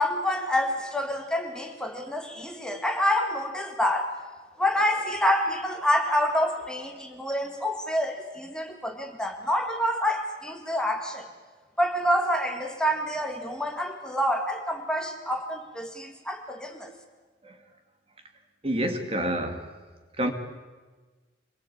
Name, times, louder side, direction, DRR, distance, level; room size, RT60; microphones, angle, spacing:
voice 1, 0.0-4.2 4.6-11.3 11.8-16.9, left 1 dB, 5° left, 3 dB, 2.0 m, -27 dB
voice 2, 18.6-19.6 20.2-20.3, right 1 dB, 30° right, 6 dB, 2.4 m, -28 dB
26.5 x 22.0 x 8.7 m, 1.3 s
head